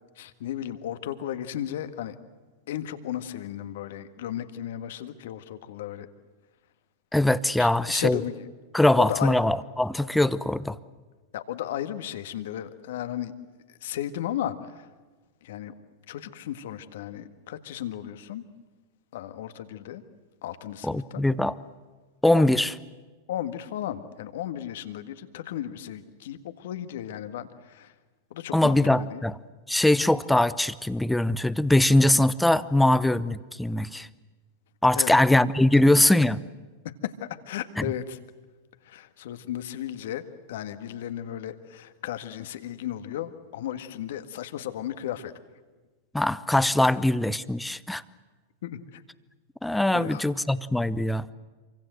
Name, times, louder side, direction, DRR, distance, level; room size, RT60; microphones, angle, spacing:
voice 1, 0.2-2.2 2.7-6.1 7.6-8.5 9.0-9.3 11.3-13.4 13.8-14.9 15.4-15.7 16.1-18.4 19.1-20.0 20.4-21.2 22.3-22.5 23.3-27.9 28.3-29.2 35.0-35.2 37.0-38.2 38.8-45.3 48.6-49.0 49.9-50.3, left 11 dB, 65° left, 10 dB, 1.8 m, -35 dB
voice 2, 7.1-8.2 8.7-10.8 20.8-21.5 22.2-22.7 28.5-29.4 29.7-34.1 34.8-36.4 37.8-37.9 46.1-48.0 49.6-51.3, left 1 dB, 5° left, 16 dB, 0.9 m, -22 dB
27.0 x 24.5 x 7.9 m, 1.3 s
figure-of-eight pair, 95°, 0 cm